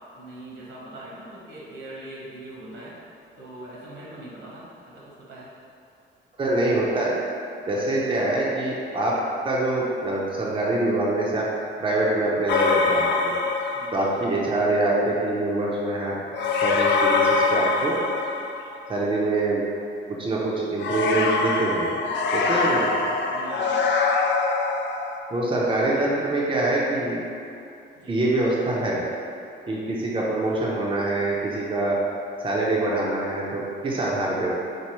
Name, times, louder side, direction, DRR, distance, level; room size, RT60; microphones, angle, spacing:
voice 1, 0.1-2.9 3.4-5.5 8.0-8.3 13.7-14.2 22.4-22.9 23.3-23.9 25.8-26.1 27.9-28.2 34.1-34.5, right 1 dB, 80° right, -7 dB, 1.2 m, -42 dB
voice 2, 6.4-7.1 7.7-9.2 9.4-11.5 11.8-13.3 13.9-16.1 16.6-18.0 18.9-19.6 20.1-22.0 22.3-22.9 25.3-27.2 28.1-29.0 29.7-32.0 32.4-34.5, right 2 dB, 25° right, -5 dB, 0.6 m, -24 dB
sound 1, 12.5-14.2 16.3-18.9 20.8-25.2, left 4 dB, 65° left, 0.4 m, -23 dB
4.6 x 2.5 x 3.0 m, 2.6 s
cardioid pair, 90°, 20 cm